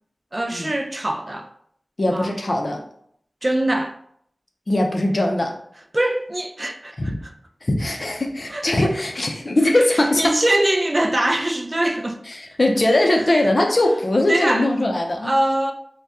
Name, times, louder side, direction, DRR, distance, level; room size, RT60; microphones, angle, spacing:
voice 1, 0.3-1.5 2.1-2.3 3.4-3.9 5.9-7.3 8.5-8.9 9.9-12.2 14.3-14.7 15.2-15.7, right 1 dB, 35° right, 0.3 m, -23 dB
voice 2, 2.0-2.8 4.7-5.5 7.0-7.1 7.6-10.4 12.4-15.3, left 1 dB, 50° left, 0.5 m, -20 dB
2.7 x 2.2 x 3.4 m
wide cardioid pair, 60°, 0 cm